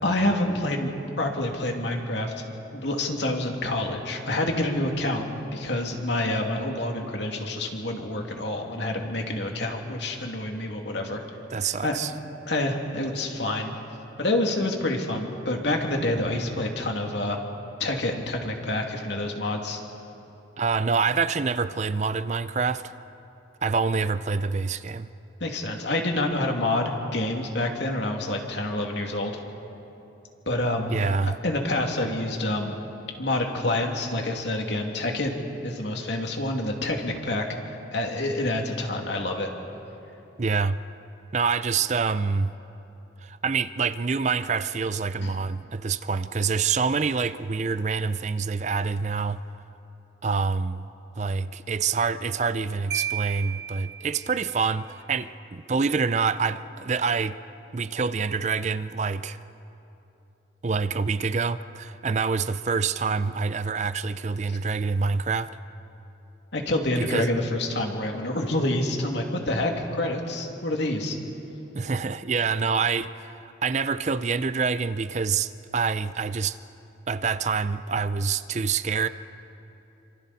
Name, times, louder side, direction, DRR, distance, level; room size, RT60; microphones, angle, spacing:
voice 1, 0.0-0.9 1.2-2.3 2.7-11.2 11.8-12.0 12.5-13.7 14.2-17.4 17.8-19.8 25.4-29.4 30.5-30.9 31.2-32.8 33.2-35.3 35.6-37.4 37.9-39.5 45.2-45.3 64.5-64.6 66.5-71.2, left 1 dB, 70° left, 2.5 m, -27 dB
voice 2, 11.5-12.1 20.6-22.9 23.6-25.1 30.9-31.4 40.4-40.8 41.3-42.5 43.2-49.4 50.2-50.9 51.2-57.4 57.7-59.4 60.6-65.5 67.0-67.3 71.7-76.6 77.1-79.1, right 5 dB, 35° right, 0.5 m, -26 dB
Marimba xylophone, 52.9-54.6, right 9 dB, 60° right, 0.8 m, -33 dB
28.5 x 26.0 x 4.2 m
head